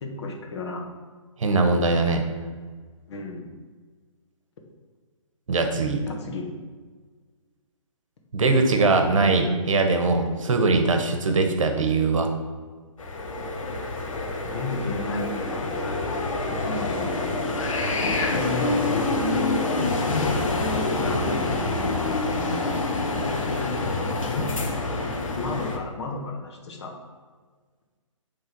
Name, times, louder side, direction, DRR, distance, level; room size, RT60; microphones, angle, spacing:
voice 1, 0.0-0.9 3.1-3.5 6.1-6.5 14.5-15.7 16.5-17.5 18.3-19.7 20.1-21.3 23.6-23.8 24.3-24.5 25.3-26.9, left 3 dB, 55° left, 1 dB, 1.2 m, -32 dB
voice 2, 1.4-2.2 5.5-6.0 8.3-12.3, right 3 dB, 70° right, 5 dB, 1.1 m, -21 dB
sound 1, 13.0-25.8, left 2 dB, 75° left, 1.2 m, -26 dB
6.7 x 3.5 x 5.9 m, 1.5 s
hypercardioid pair, 145°, 17 cm